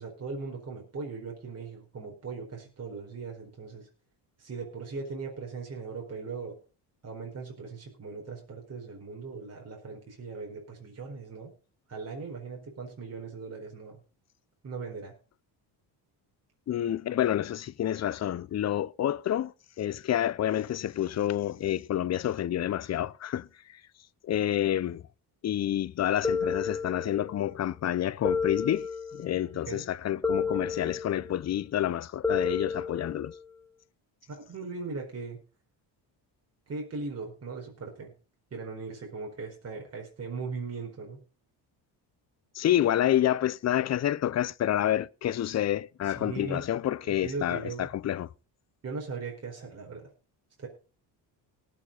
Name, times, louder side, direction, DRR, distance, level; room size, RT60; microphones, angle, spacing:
voice 1, 0.0-3.9 4.4-6.6 7.0-11.5 11.9-14.0 14.6-15.1 29.7-29.9 34.3-35.4 36.7-38.1 38.5-41.2 46.0-46.6 47.0-47.9 48.8-50.1 50.6-50.7, right 4 dB, 35° right, 4.4 m, -39 dB
voice 2, 16.7-19.5 19.8-23.5 24.2-25.0 25.4-28.9 29.1-33.3 42.5-48.3, left 11 dB, 40° left, 0.6 m, -28 dB
sound 1, 26.2-27.4 28.2-29.4 30.2-31.4 32.2-33.4, left 5 dB, 5° left, 1.0 m, -31 dB
19.5 x 7.6 x 3.9 m
cardioid pair, 125°, 43 cm